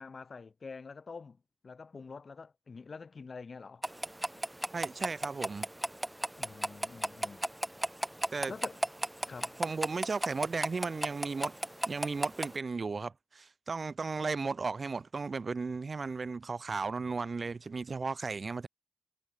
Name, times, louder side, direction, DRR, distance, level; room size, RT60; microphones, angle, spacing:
voice 1, 0.0-3.9 6.4-7.5 8.5-8.8 9.3-9.6, left 4 dB, 55° left, 2.8 m, -46 dB
sound 1, 3.8-12.6, right 1 dB, 10° right, 0.5 m, -36 dB
voice 2, 4.7-5.7 8.3-8.5 9.6-11.5 11.9-18.7, right 4 dB, 50° right, 1.5 m, -35 dB
wide cardioid pair, 100°, 0 cm